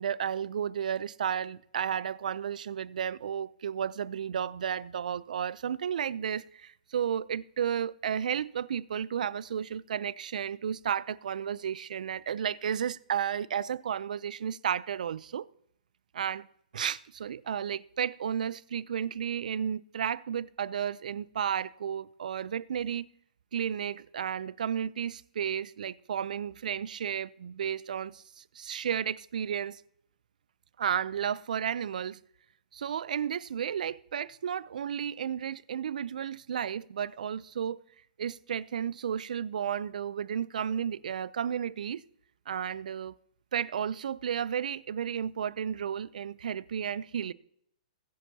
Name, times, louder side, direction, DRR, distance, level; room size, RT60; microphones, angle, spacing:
voice 1, 0.0-15.5 16.1-16.5 16.7-23.1 23.5-29.8 30.8-32.2 32.7-37.8 38.2-42.0 42.5-43.1 43.5-47.3, right 8 dB, 75° right, 0.5 m, -33 dB
21.5 x 8.4 x 2.8 m
hypercardioid pair, 145°, 4 cm